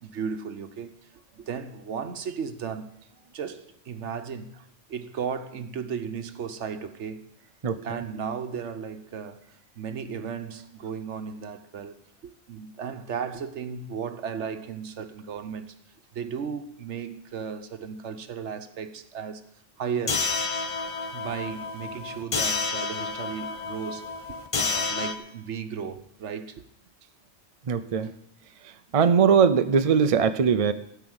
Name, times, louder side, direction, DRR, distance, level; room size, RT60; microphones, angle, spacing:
voice 1, 0.0-1.0 1.3-2.9 3.3-4.5 4.9-7.3 7.8-9.4 9.8-12.0 12.2-15.7 16.1-19.4 19.8-20.3 21.1-24.1 24.5-26.6, right 6 dB, 70° right, 1.2 m, -35 dB
sound 1, 20.1-25.1, left 4 dB, 30° left, 0.7 m, -30 dB
voice 2, 27.7-28.1 28.9-30.7, right 6 dB, 45° right, 0.4 m, -20 dB
15.5 x 5.7 x 8.0 m
omnidirectional pair, 1.3 m